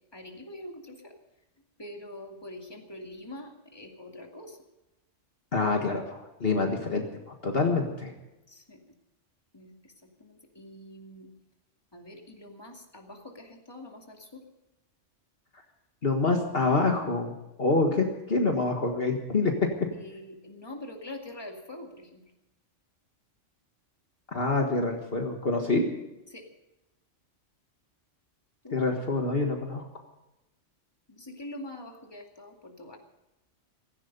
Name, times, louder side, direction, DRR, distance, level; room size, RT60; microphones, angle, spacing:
voice 1, 0.1-0.9 1.8-4.5 8.7-8.8 9.5-9.7 10.6-11.3 11.9-14.2 20.0-22.2 26.3-26.4 28.6-28.7 31.3-33.0, left 1 dB, 20° left, 2 dB, 2.3 m, -44 dB
voice 2, 5.5-7.0 7.4-8.1 16.0-17.3 17.6-19.9 24.3-25.9 28.7-29.8, left 3 dB, 50° left, 2 dB, 1.8 m, -26 dB
17.0 x 15.5 x 5.3 m, 0.95 s
omnidirectional pair, 1.3 m